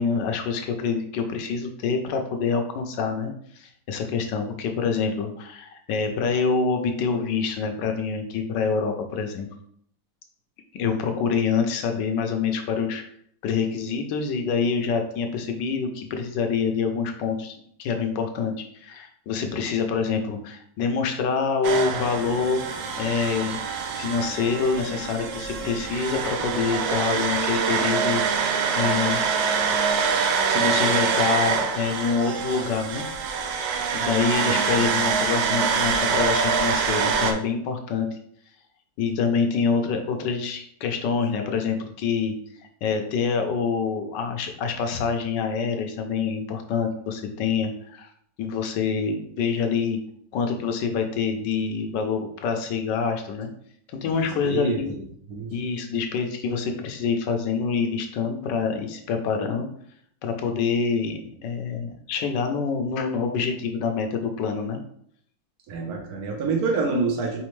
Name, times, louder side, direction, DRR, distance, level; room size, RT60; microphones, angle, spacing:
voice 1, 0.0-9.5 10.8-13.0 13.4-17.5 17.8-23.6 24.0-29.8 30.5-33.1 33.9-38.2 39.0-42.3 42.8-48.1 48.4-50.0 50.3-53.5 53.9-54.9 55.5-59.7 60.2-64.8, left 5 dB, 70° left, 5 dB, 1.2 m, -26 dB
sound 1, 21.6-37.3, right 5 dB, 75° right, 1.2 m, -25 dB
voice 2, 54.2-54.9 55.3-55.5 65.7-67.4, right 3 dB, 55° right, 1 dB, 1.3 m, -27 dB
4.2 x 3.9 x 3.1 m, 0.66 s
omnidirectional pair, 2.1 m